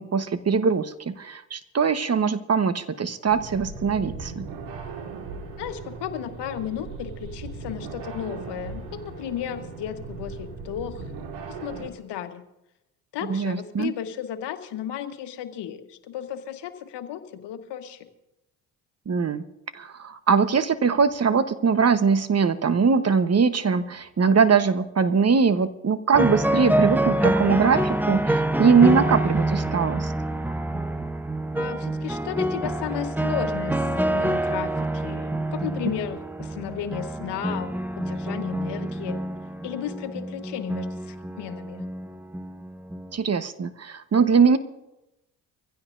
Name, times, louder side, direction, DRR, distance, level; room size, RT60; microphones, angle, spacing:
voice 1, 0.0-4.5 13.3-13.9 19.1-19.4 19.7-30.1 43.1-44.6, right 5 dB, 35° right, 11 dB, 1.1 m, -21 dB
sound 1, 3.2-11.9, right 4 dB, 80° right, 2.0 m, -38 dB
voice 2, 5.6-11.0 11.5-12.4 13.1-18.1 31.5-39.2 39.6-41.9, left 10 dB, 70° left, 8 dB, 1.4 m, -34 dB
sound 2, 26.1-43.2, right 1 dB, 5° right, 1.0 m, -27 dB
24.0 x 15.5 x 2.6 m, 0.91 s
supercardioid pair, 60°, 43 cm